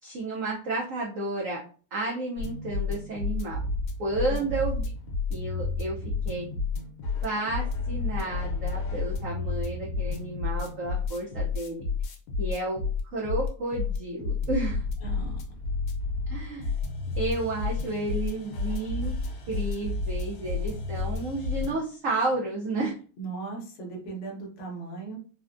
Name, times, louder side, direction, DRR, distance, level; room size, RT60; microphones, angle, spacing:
voice 1, 0.0-1.6 1.9-3.6 4.0-4.8 5.3-5.9 6.2-6.5 7.2-11.8 12.4-12.8 13.1-14.8 16.3-16.7 17.2-19.1 19.5-22.9, right 2 dB, 85° right, -3 dB, 0.7 m, -31 dB
sound 1, 2.4-21.7, left 4 dB, 70° left, 1.3 m, -31 dB
voice 2, 15.0-15.4 23.2-25.2, right 4 dB, 55° left, 0 dB, 0.8 m, -37 dB
3.8 x 2.1 x 2.5 m, 0.40 s
omnidirectional pair, 2.3 m